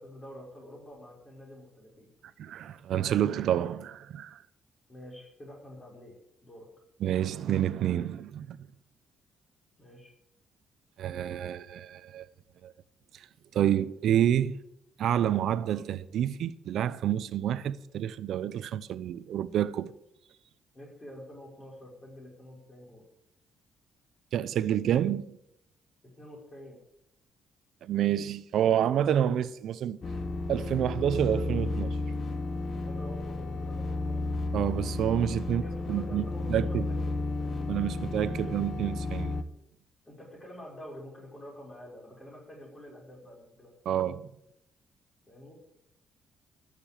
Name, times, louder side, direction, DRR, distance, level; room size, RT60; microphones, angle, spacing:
voice 1, 0.0-2.1 4.9-6.7 9.8-10.1 20.7-23.1 26.0-26.8 32.7-34.2 35.5-37.8 38.4-38.5 40.1-44.1 45.3-45.5, equal, 30° left, 5.6 m, -48 dB
voice 2, 2.4-4.4 7.0-8.6 11.0-12.3 12.6-12.7 13.1-13.3 13.5-14.6 15.0-19.9 24.3-25.4 27.8-30.0 30.5-32.0 34.5-35.6 35.9-36.2 36.5-36.9 37.7-39.4 43.9-44.3, right 10 dB, 75° right, 0.7 m, -28 dB
sound 1, 30.0-39.4, left 2 dB, 45° left, 1.1 m, -33 dB
13.0 x 6.8 x 9.0 m
cardioid pair, 90°, 0 cm